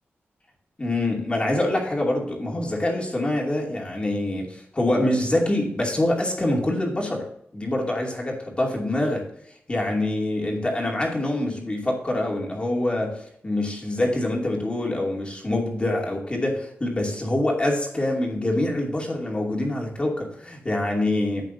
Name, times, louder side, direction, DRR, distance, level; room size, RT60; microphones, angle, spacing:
voice 1, 0.8-7.3 7.5-9.2 9.7-21.5, left 1 dB, 25° left, -1 dB, 2.6 m, -25 dB
12.0 x 8.0 x 2.7 m, 0.71 s
wide cardioid pair, 110°, 4 cm